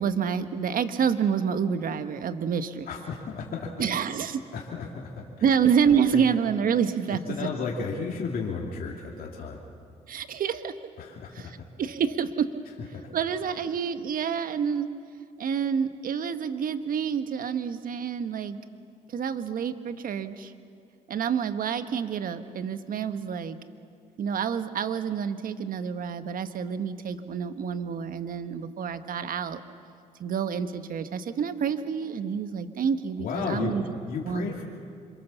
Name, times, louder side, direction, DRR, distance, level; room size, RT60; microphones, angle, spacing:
voice 1, 0.0-2.9 3.8-4.4 5.4-7.2 10.1-10.7 11.3-11.5 11.8-12.5 13.1-14.9 15.4-18.6 19.1-20.5 21.1-23.6 24.2-29.6 30.2-33.8 34.3-34.6, right 7 dB, 65° right, 10 dB, 1.3 m, -28 dB
voice 2, 2.9-3.7 4.5-5.2 6.1-6.2 7.1-9.6 11.0-11.5 12.9-13.0 33.2-33.7 34.1-34.7, left 5 dB, 65° left, -2 dB, 2.7 m, -33 dB
26.0 x 23.5 x 7.1 m, 2.3 s
supercardioid pair, 60°, 16 cm